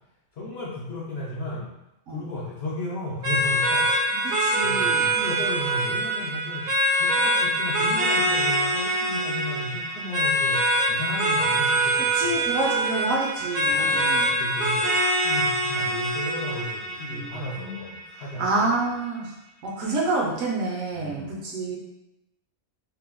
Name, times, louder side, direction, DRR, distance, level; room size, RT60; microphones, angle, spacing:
voice 1, 0.4-1.7 2.1-3.9 4.6-6.7 7.0-10.6 10.9-12.6 13.7-14.9 15.2-18.8 20.9-21.4, left 2 dB, 65° left, -5 dB, 0.7 m, -34 dB
sound 1, 3.2-18.2, right 1 dB, 60° right, 0.6 m, -24 dB
voice 2, 4.2-5.0 12.1-14.4 17.1-17.7 18.4-19.2 19.6-21.8, right 2 dB, 75° right, -3 dB, 1.0 m, -28 dB
2.8 x 2.1 x 3.4 m, 0.90 s
omnidirectional pair, 1.4 m